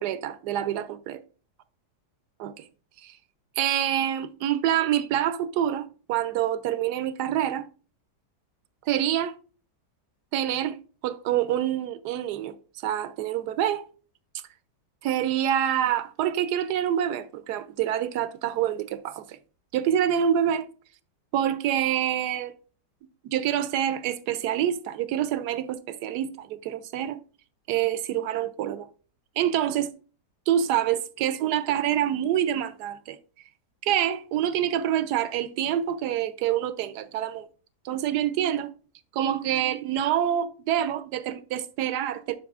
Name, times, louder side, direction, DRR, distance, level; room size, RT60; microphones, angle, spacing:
voice 1, 0.0-1.2 2.4-2.6 3.0-3.1 3.6-7.7 8.9-9.3 10.3-10.8 11.0-12.5 12.8-13.9 15.0-19.4 19.7-20.7 21.3-22.5 23.2-27.2 27.7-28.9 29.4-29.9 30.5-33.2 33.8-37.5 37.8-38.7 39.1-42.3, right 10 dB, 75° right, 1.1 m, -26 dB
10.5 x 5.4 x 2.4 m
omnidirectional pair, 1.9 m